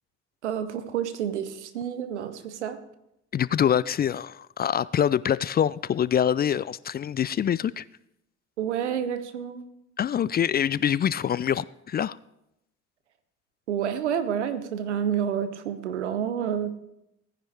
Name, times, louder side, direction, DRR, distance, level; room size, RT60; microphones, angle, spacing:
voice 1, 0.4-2.8 8.6-9.6 13.7-16.8, right 8 dB, 85° right, 0.8 m, -29 dB
voice 2, 3.3-7.9 10.0-12.2, left 9 dB, 30° left, 0.4 m, -25 dB
17.5 x 9.9 x 3.4 m
hypercardioid pair, 50°, 34 cm